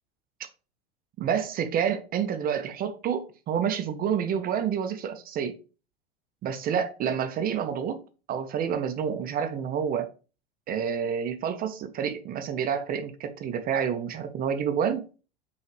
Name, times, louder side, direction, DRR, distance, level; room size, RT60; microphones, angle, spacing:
voice 1, 1.2-5.6 6.4-8.0 8.3-10.1 10.7-15.1, right 8 dB, 30° right, 0.5 m, -28 dB
5.5 x 2.4 x 3.1 m
hypercardioid pair, 85°, 29 cm